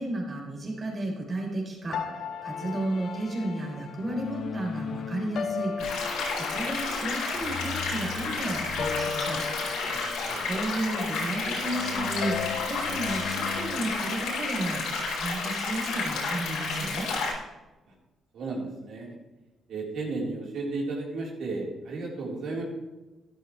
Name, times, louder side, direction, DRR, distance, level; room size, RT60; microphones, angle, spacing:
voice 1, 0.0-9.4 10.4-14.8 15.1-17.1, right 1 dB, 35° right, -1 dB, 4.1 m, -33 dB
sound 1, 1.9-14.1, left 7 dB, 65° left, 0.9 m, -36 dB
sound 2, 5.8-17.3, left 3 dB, 85° left, 4.5 m, -31 dB
voice 2, 9.9-10.5 18.3-19.1 19.7-22.6, right 3 dB, 70° right, -2 dB, 4.0 m, -34 dB
13.5 x 12.0 x 3.3 m, 1.1 s
cardioid pair, 90°, 0 cm